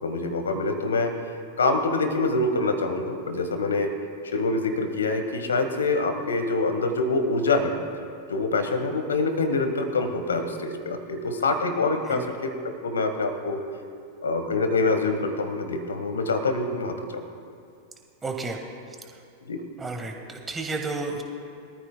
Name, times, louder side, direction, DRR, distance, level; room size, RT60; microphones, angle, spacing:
voice 1, 0.0-1.1 1.6-3.9 4.2-7.7 8.3-12.5 12.8-13.6 14.2-17.2 19.5-19.6, left 3 dB, 70° left, 7 dB, 1.5 m, -25 dB
voice 2, 18.2-18.6 19.8-21.2, right 3 dB, 15° right, 3 dB, 1.8 m, -32 dB
23.5 x 14.0 x 2.3 m, 2.4 s
figure-of-eight pair, 90°, 0 cm